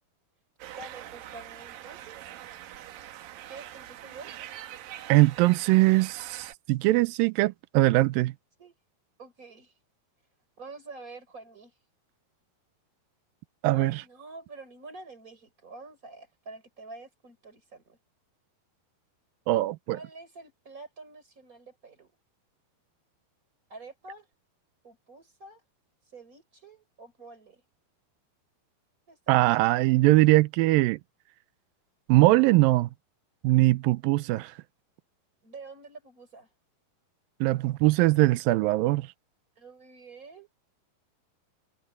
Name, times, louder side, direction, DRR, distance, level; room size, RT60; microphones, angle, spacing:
sound 1, 0.6-6.5, right 12 dB, 70° right, 2.6 m, -44 dB
voice 1, 0.8-2.3 3.5-4.3 8.6-8.8 9.2-9.7 10.6-11.7 13.7-18.0 19.9-22.1 23.7-24.3 24.8-25.6 26.1-27.6 29.1-29.2 35.4-36.5 39.6-40.5, right 3 dB, 20° right, 4.3 m, -47 dB
voice 2, 5.1-8.3 13.6-14.0 19.5-20.0 29.3-31.0 32.1-32.9 33.4-34.5 37.4-39.1, right 19 dB, 85° right, 2.1 m, -21 dB
omnidirectional pair, 4.8 m